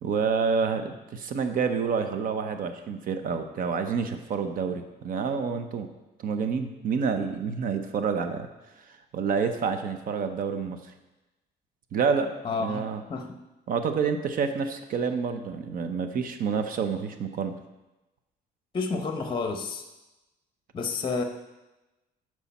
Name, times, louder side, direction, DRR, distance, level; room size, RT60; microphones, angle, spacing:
voice 1, 0.0-5.9 6.2-8.5 9.1-10.8 11.9-12.3 12.6-13.0 13.7-17.5, right 5 dB, 55° right, 8 dB, 0.8 m, -28 dB
voice 2, 12.4-12.8 13.1-13.3 18.7-19.8 20.7-21.2, left 4 dB, 30° left, 5 dB, 0.8 m, -29 dB
11.5 x 4.8 x 4.2 m, 1.0 s
cardioid pair, 110°, 17 cm